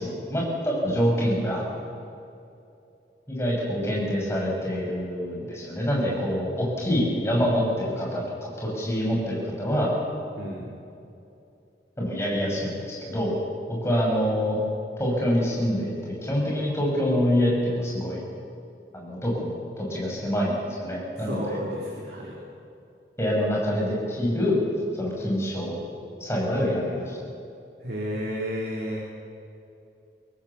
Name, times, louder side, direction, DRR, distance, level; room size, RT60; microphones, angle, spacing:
voice 1, 0.0-1.6 3.3-9.9 12.0-13.4 13.7-14.6 15.0-18.2 18.9-21.6 23.2-24.6 24.9-25.8 26.2-27.2, equal, 15° left, -3 dB, 6.1 m, -26 dB
voice 2, 21.2-22.4 27.8-29.0, equal, 70° right, -4 dB, 3.5 m, -32 dB
23.5 x 18.0 x 7.1 m, 2.7 s
head